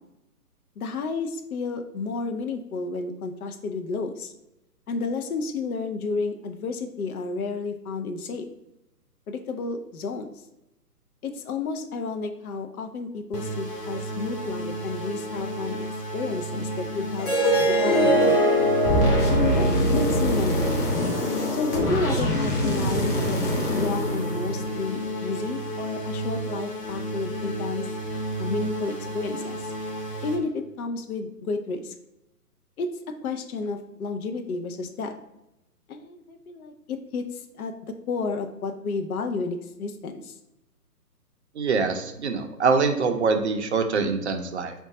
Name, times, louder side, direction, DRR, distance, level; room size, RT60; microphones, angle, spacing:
voice 1, 0.8-4.3 4.9-8.5 9.3-10.3 11.2-15.8 16.1-17.3 17.6-18.5 19.3-19.7 19.9-20.7 21.5-23.4 23.7-27.9 28.4-29.7 30.2-31.9 32.8-32.9 33.2-35.1 35.9-40.3, left 4 dB, 65° left, 6 dB, 0.6 m, -31 dB
sound 1, 13.3-30.4, right 1 dB, 85° left, 1.1 m, -32 dB
Harp, 17.2-22.3, equal, 15° left, 0.7 m, -24 dB
sound 2, 18.9-25.0, equal, 35° left, 1.2 m, -25 dB
voice 2, 41.6-44.7, right 4 dB, 45° right, 6 dB, 0.5 m, -24 dB
3.7 x 2.3 x 3.7 m, 0.91 s
figure-of-eight pair, 140°, 48 cm